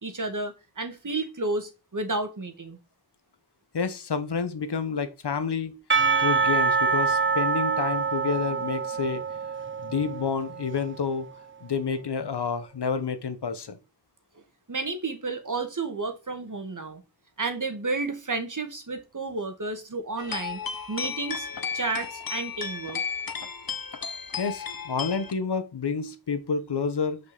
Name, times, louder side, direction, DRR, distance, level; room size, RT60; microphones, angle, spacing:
voice 1, 0.0-2.8 14.7-17.0 17.4-20.6 20.9-21.5 21.7-23.0, right 3 dB, 50° right, 1.9 m, -31 dB
voice 2, 3.7-5.8 6.2-9.2 9.8-11.3 11.6-13.8 24.4-27.2, left 5 dB, 85° left, 1.1 m, -29 dB
Percussion / Church bell, 5.9-11.1, right 5 dB, 30° right, 0.6 m, -26 dB
sound 1, 20.2-25.3, left 6 dB, 60° left, 1.0 m, -34 dB
6.2 x 5.5 x 6.8 m
wide cardioid pair, 45°, 39 cm